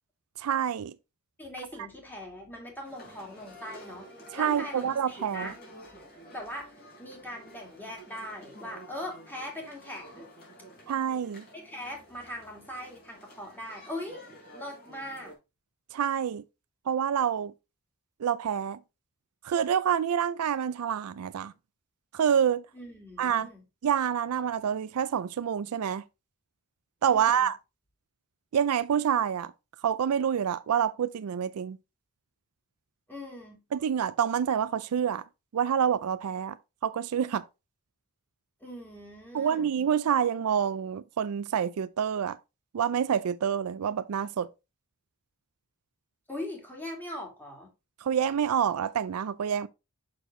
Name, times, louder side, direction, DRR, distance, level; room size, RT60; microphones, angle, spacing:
voice 1, 0.4-0.9 4.3-5.5 10.9-11.4 15.9-16.4 16.9-17.5 18.2-18.8 19.4-21.5 22.1-22.6 23.2-23.5 23.8-26.0 27.0-27.6 28.5-29.5 29.8-31.8 33.7-35.2 35.5-36.6 36.8-37.4 39.3-42.4 42.7-44.5 48.0-49.7, right 8 dB, 75° right, 0.4 m, -27 dB
voice 2, 1.4-4.1 4.3-5.6 6.3-10.3 11.5-14.2 14.5-15.3 22.7-23.6 27.1-27.5 33.1-33.6 38.6-39.7 46.3-47.7, left 1 dB, 10° left, 2.4 m, -41 dB
sound 1, 2.8-15.3, equal, 45° left, 3.8 m, -50 dB
6.3 x 6.0 x 3.2 m
head